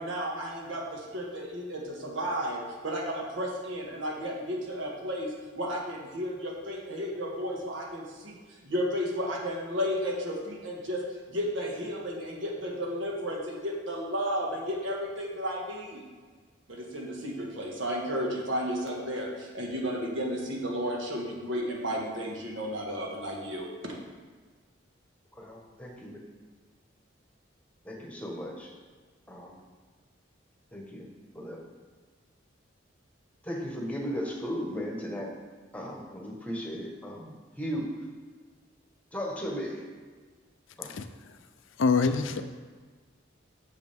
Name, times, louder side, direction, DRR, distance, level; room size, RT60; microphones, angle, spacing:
voice 1, 0.0-11.0 11.3-16.0 16.7-23.9, equal, 75° right, -1 dB, 1.6 m, -33 dB
voice 2, 25.3-26.2 27.8-28.7 29.3-29.6 30.7-31.1 31.3-31.6 33.4-35.3 35.7-37.9 39.1-39.8 40.8-40.9, equal, 5° left, -1 dB, 1.1 m, -36 dB
voice 3, 40.8-41.3 41.8-42.4, left 4 dB, 75° left, 9 dB, 0.5 m, -26 dB
8.3 x 6.3 x 3.5 m, 1.5 s
head